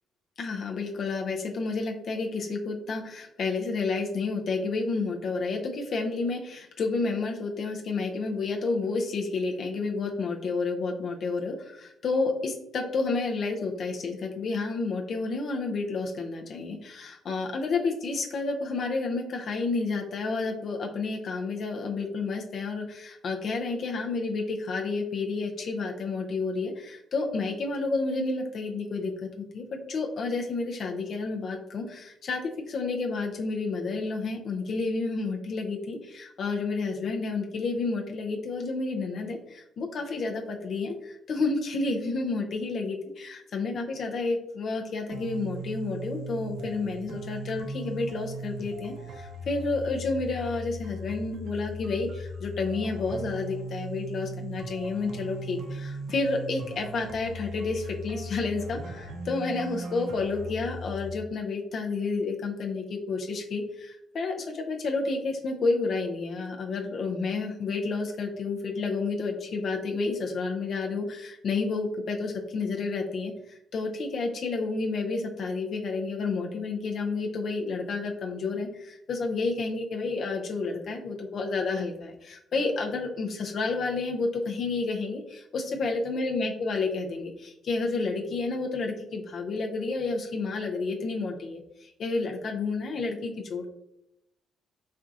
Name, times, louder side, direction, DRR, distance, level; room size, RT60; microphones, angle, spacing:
voice 1, 0.4-93.7, left 3 dB, 60° left, 2 dB, 0.5 m, -30 dB
sound 1, 45.1-61.1, right 1 dB, 65° right, 0.4 m, -38 dB
4.3 x 2.4 x 2.5 m, 0.84 s
cardioid pair, 90°, 0 cm